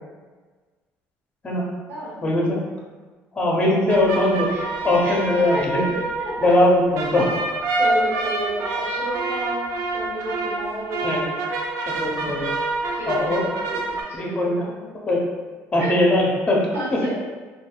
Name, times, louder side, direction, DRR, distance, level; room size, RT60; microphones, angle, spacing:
voice 1, 2.2-2.6 3.3-4.5 4.8-5.8 6.4-7.3 11.0-11.3 11.9-12.6 13.0-13.4 14.1-14.6 15.1-15.2 15.7-16.6 16.9-17.1, left 1 dB, 20° left, -2 dB, 0.6 m, -20 dB
sound 1, 3.9-14.0, right 2 dB, 85° right, 0.4 m, -27 dB
voice 2, 5.9-6.5 7.7-9.7 9.9-11.3 12.9-13.8 14.1-14.8 15.8-15.9 16.7-17.1, right 1 dB, 40° right, -10 dB, 1.2 m, -31 dB
3.3 x 2.3 x 2.3 m, 1.4 s
cardioid pair, 150°, 5 cm